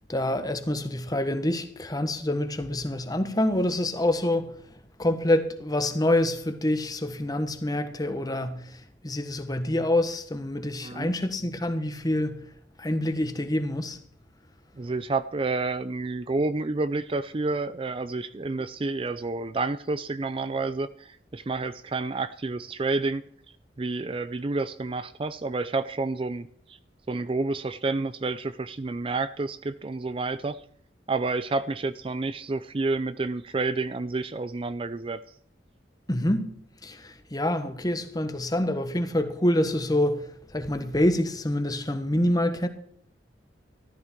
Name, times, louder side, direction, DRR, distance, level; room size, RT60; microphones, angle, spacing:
voice 1, 0.1-4.7 5.0-12.5 12.8-14.0 36.1-36.5 36.8-42.7, left 1 dB, 20° left, 1.3 m, -26 dB
voice 2, 14.7-23.3 23.8-26.8 27.1-30.6 31.1-35.2, right 3 dB, 30° right, 0.4 m, -29 dB
14.5 x 13.0 x 4.4 m
head